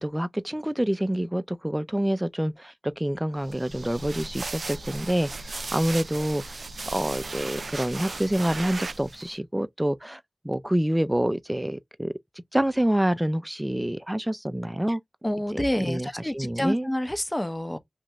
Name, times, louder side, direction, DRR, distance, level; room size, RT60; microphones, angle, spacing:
voice 1, 0.0-6.6 6.9-12.1 12.5-15.0 15.9-16.1 16.3-16.9, right 1 dB, 15° right, 0.5 m, -27 dB
sound 1, 3.4-9.3, right 3 dB, 70° right, 0.3 m, -36 dB
voice 2, 15.2-17.8, left 1 dB, 20° left, 0.8 m, -28 dB
3.0 x 2.6 x 3.4 m
cardioid pair, 40°, 0 cm